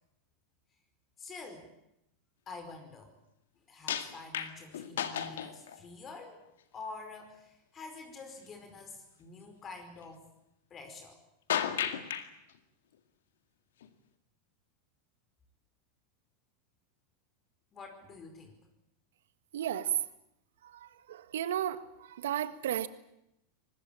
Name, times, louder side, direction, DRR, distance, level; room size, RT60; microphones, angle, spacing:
voice 1, 1.2-1.7 2.5-3.1 3.7-6.4 6.7-10.3 10.7-11.2 17.7-18.6, left 3 dB, 30° left, 6 dB, 4.9 m, -47 dB
sound 1, 3.9-5.8 6.5-6.6 11.5-12.3 13.8-13.9, left 9 dB, 75° left, 1.9 m, -33 dB
voice 2, 19.5-20.0 20.6-22.9, right 11 dB, 75° right, 13 dB, 1.6 m, -34 dB
24.5 x 20.0 x 8.9 m, 0.83 s
hypercardioid pair, 95°, 0 cm